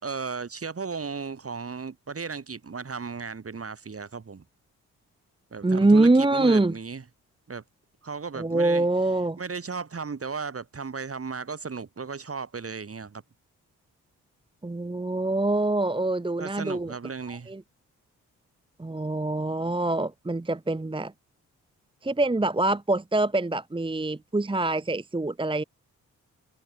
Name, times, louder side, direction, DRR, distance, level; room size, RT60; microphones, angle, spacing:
voice 1, 0.0-4.4 5.5-7.0 7.5-7.6 8.0-8.9 9.4-13.2 16.4-17.5, right 5 dB, 40° right, 2.5 m, -35 dB
voice 2, 5.6-6.7 8.3-9.4 14.6-16.9 17.3-17.6 18.8-21.1 22.0-25.6, right 2 dB, 15° right, 1.0 m, -24 dB
supercardioid pair, 45°, 36 cm